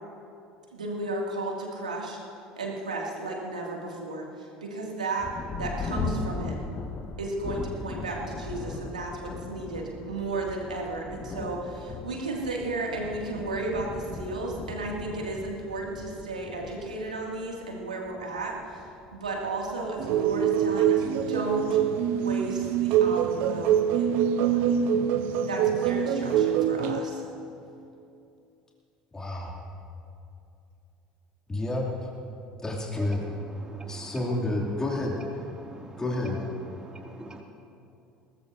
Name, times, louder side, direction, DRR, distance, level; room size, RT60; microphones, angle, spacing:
voice 1, 0.7-2.2 2.6-5.3 5.6-6.6 7.2-21.8 22.1-24.9 25.5-27.2, right 2 dB, 80° right, -1 dB, 2.2 m, -34 dB
Thunder, 5.2-21.2 22.0-22.1 22.7-23.1, left 4 dB, 35° left, 1.1 m, -39 dB
sound 1, 20.0-27.0, right 9 dB, 55° right, 0.8 m, -24 dB
voice 2, 29.1-29.5 31.5-32.1 32.6-33.2 33.9-35.2 36.0-36.4, left 2 dB, 15° left, -2 dB, 2.6 m, -29 dB
voice 3, 33.6-34.1 35.6-36.0 36.8-37.4, right 2 dB, 20° right, 1 dB, 2.3 m, -45 dB
23.0 x 19.0 x 2.6 m, 2.6 s
figure-of-eight pair, 65°, 4 cm